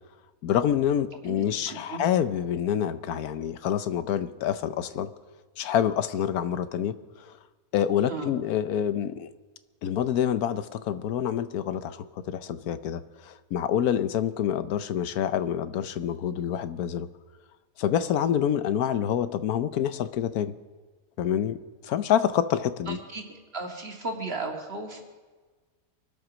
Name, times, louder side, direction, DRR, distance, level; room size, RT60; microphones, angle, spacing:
voice 1, 0.4-5.1 5.6-7.3 7.7-9.3 9.8-17.1 17.8-20.5 21.2-21.6 21.8-23.0, left 9 dB, 80° left, 13 dB, 1.2 m, -27 dB
voice 2, 1.2-2.0 8.1-8.3 22.9-23.2 23.5-25.0, right 3 dB, 40° right, 2 dB, 2.2 m, -35 dB
24.0 x 8.1 x 6.2 m, 1.3 s
omnidirectional pair, 1.6 m